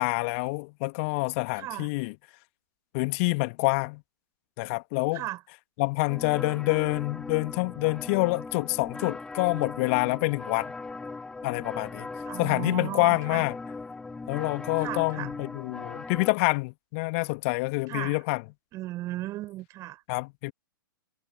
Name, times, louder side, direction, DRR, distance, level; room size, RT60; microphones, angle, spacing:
voice 1, 0.0-2.1 2.9-4.0 4.6-5.2 5.8-10.7 11.4-12.1 12.4-13.5 14.3-18.4 20.1-20.5, left 28 dB, 35° left, 1.8 m, -27 dB
voice 2, 1.5-1.9 5.1-5.4 12.2-13.5 14.8-15.3 17.9-18.2 18.7-20.0, right 16 dB, 25° right, 4.8 m, -36 dB
sound 1, 6.1-16.3, left 3 dB, 5° left, 1.0 m, -39 dB
figure-of-eight pair, 110°, 11 cm